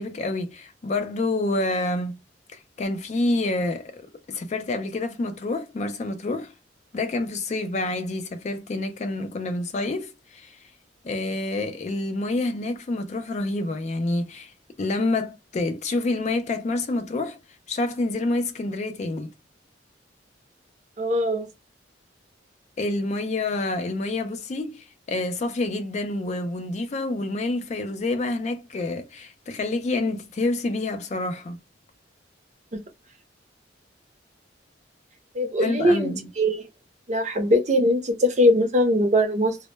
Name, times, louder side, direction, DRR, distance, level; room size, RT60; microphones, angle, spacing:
voice 1, 0.0-2.2 2.5-6.5 6.9-10.6 11.0-17.4 17.7-19.3 22.8-31.6 35.6-36.3, left 2 dB, 35° left, 0.3 m, -28 dB
voice 2, 21.0-21.5 32.7-32.8 35.3-36.1 36.4-36.7 37.1-39.6, left 1 dB, 35° right, 0.5 m, -21 dB
2.1 x 2.1 x 3.0 m
head